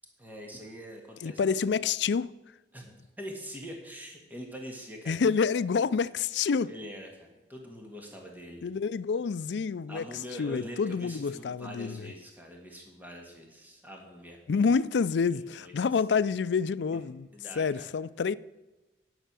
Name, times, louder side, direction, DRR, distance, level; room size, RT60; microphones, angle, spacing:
voice 1, 0.2-1.8 2.7-5.2 6.6-8.6 9.9-14.4 15.3-15.7 16.9-17.0 17.3-17.9, equal, 10° right, 1.7 m, -44 dB
voice 2, 1.2-2.3 5.1-6.7 8.6-10.0 10.4-12.1 14.5-17.3 17.6-18.3, left 5 dB, 80° left, 0.4 m, -28 dB
10.5 x 6.5 x 7.5 m
head